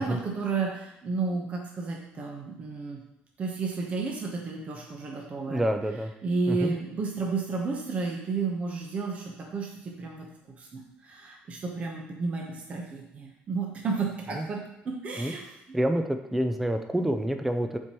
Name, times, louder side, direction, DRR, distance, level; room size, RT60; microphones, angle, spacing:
voice 1, 0.0-3.0 3.4-5.6 6.2-10.3 10.6-15.5, right 4 dB, 35° right, 0 dB, 1.0 m, -32 dB
voice 2, 5.5-6.1 6.5-6.7 14.4-14.5 15.2-15.3 15.7-17.8, right 1 dB, 5° right, 6 dB, 0.4 m, -27 dB
7.2 x 4.6 x 3.0 m, 0.83 s
cardioid pair, 145°, 4 cm